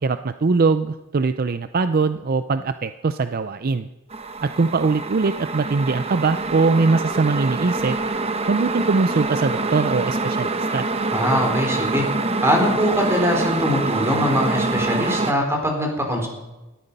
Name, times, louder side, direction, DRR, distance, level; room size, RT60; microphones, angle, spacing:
voice 1, 0.0-3.9 4.4-8.0 8.5-10.9, right 4 dB, 45° right, 11 dB, 0.5 m, -21 dB
sound 1, 4.1-15.3, right 3 dB, 30° right, 1.0 m, -25 dB
voice 2, 11.1-12.0 12.4-16.3, equal, 15° right, 2 dB, 4.0 m, -22 dB
19.0 x 14.0 x 5.4 m, 1.1 s
head